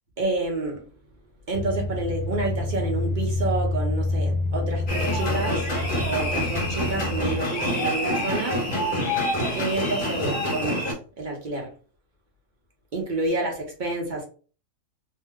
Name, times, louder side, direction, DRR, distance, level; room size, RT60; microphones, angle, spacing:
voice 1, 0.2-0.9 1.5-5.7 6.0-8.6 9.5-10.8 11.2-11.7 12.9-14.2, right 2 dB, 45° right, 0.8 m, -29 dB
sound 1, 1.5-7.4, left 2 dB, 85° left, 1.0 m, -28 dB
sound 2, 4.9-10.9, equal, 40° left, 1.0 m, -27 dB
2.7 x 2.1 x 3.5 m
omnidirectional pair, 1.4 m